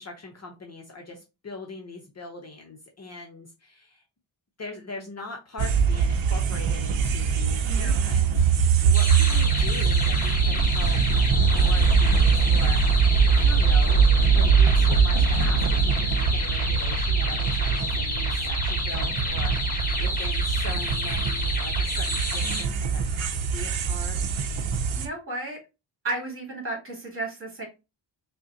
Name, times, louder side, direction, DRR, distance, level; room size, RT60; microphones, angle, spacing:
voice 1, 0.0-4.0 4.6-8.2 8.5-11.0 11.3-24.2, left 3 dB, 35° left, 2 dB, 0.6 m, -41 dB
sound 1, 5.6-25.1, right 6 dB, 75° right, 0.6 m, -22 dB
voice 2, 7.6-8.3 22.4-22.8 24.9-25.6 26.0-27.7, right 2 dB, 25° right, -1 dB, 2.0 m, -34 dB
sound 2, 8.9-22.6, left 2 dB, 20° left, 1.1 m, -30 dB
5.2 x 2.2 x 2.6 m, 0.27 s
wide cardioid pair, 130°, 47 cm